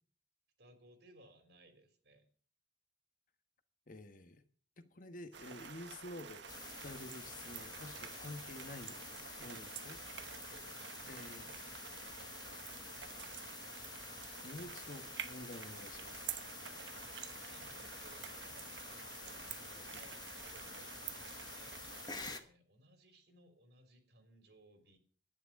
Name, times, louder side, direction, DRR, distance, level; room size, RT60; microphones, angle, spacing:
voice 1, 0.6-2.2 9.4-9.7 10.4-10.9 16.8-17.0 17.5-18.7 19.5-21.9 22.4-25.0, right 1 dB, 65° right, 7 dB, 3.1 m, -63 dB
voice 2, 3.9-4.4 4.8-6.5 6.8-9.0 9.4-10.0 11.0-11.6 14.4-16.3 19.9-20.0, left 2 dB, 50° left, 9 dB, 1.3 m, -50 dB
sound 1, 5.3-22.4, right 7 dB, 85° right, 1.1 m, -49 dB
sound 2, 6.5-22.4, left 5 dB, 25° left, 1.1 m, -50 dB
11.5 x 10.0 x 5.9 m, 0.43 s
head